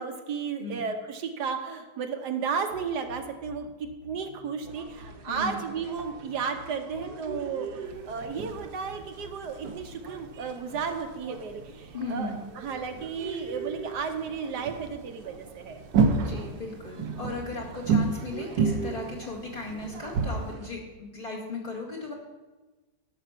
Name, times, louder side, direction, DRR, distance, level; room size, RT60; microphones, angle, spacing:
voice 1, 0.0-15.8, right 5 dB, 70° right, 6 dB, 1.5 m, -33 dB
sound 1, 2.7-10.3, left 4 dB, 90° left, 3.6 m, -51 dB
sound 2, 4.7-20.7, right 6 dB, 55° right, 0.6 m, -44 dB
voice 2, 5.3-5.6 11.9-12.4 16.1-22.1, left 3 dB, 30° left, -2 dB, 2.2 m, -36 dB
sound 3, 7.8-20.5, right 5 dB, 90° right, 1.6 m, -32 dB
12.0 x 6.7 x 5.9 m, 1.2 s
omnidirectional pair, 1.9 m